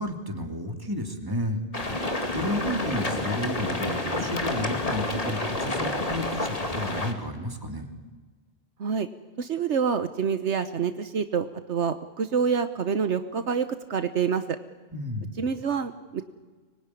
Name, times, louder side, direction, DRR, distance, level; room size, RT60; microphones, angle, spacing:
voice 1, 0.0-1.6 1.9-2.1 2.3-7.9 14.9-15.5, equal, 20° right, 4 dB, 2.9 m, -32 dB
sound 1, 1.7-7.1, left 2 dB, 30° left, 2.6 m, -29 dB
voice 2, 9.4-14.6 15.4-16.3, right 6 dB, 75° right, 10 dB, 1.3 m, -27 dB
25.0 x 21.5 x 9.9 m, 1.4 s
omnidirectional pair, 1.2 m